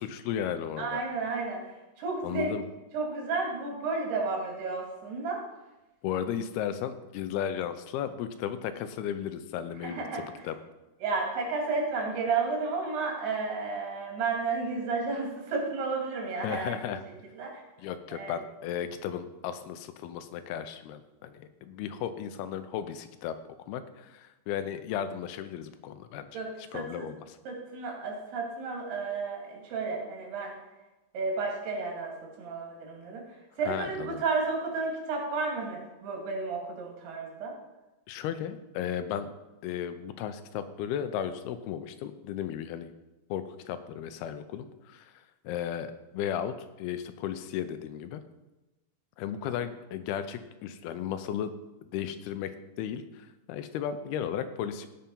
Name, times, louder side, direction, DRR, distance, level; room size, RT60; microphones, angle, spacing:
voice 1, 0.0-1.0 2.2-2.6 6.0-10.6 16.4-17.0 17.8-23.4 23.7-26.4 26.7-27.4 33.7-34.2 38.1-39.3 39.6-42.9 43.3-45.1 45.4-48.2 49.2-51.5 51.9-52.5 52.8-54.9, left 9 dB, 90° left, 10 dB, 2.7 m, -35 dB
voice 2, 0.8-2.5 2.9-5.4 9.8-10.2 11.0-16.9 17.3-17.5 18.1-18.4 26.3-27.1 27.5-30.6 31.1-33.2 33.6-37.6, right 4 dB, 90° right, 0 dB, 4.5 m, -32 dB
16.5 x 5.7 x 5.5 m, 1.0 s
omnidirectional pair, 4.5 m